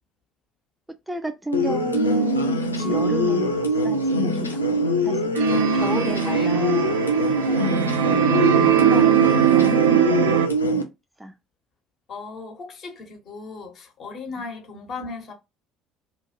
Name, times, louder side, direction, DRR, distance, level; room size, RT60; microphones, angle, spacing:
voice 1, 1.1-4.6 5.0-5.3 5.7-7.0 7.4-10.9 11.2-11.3 14.4-14.5, right 1 dB, 5° right, 0.4 m, -33 dB
sound 1, 1.5-10.8, equal, 90° left, 0.4 m, -23 dB
Chink clink, 2.8-7.1, left 5 dB, 70° left, 0.8 m, -40 dB
sound 2, 5.3-10.5, right 11 dB, 70° right, 0.3 m, -21 dB
voice 2, 5.5-6.6 9.9-10.1 12.1-15.3, left 4 dB, 50° left, 1.1 m, -37 dB
2.6 x 2.4 x 2.8 m
figure-of-eight pair, 60°, 0 cm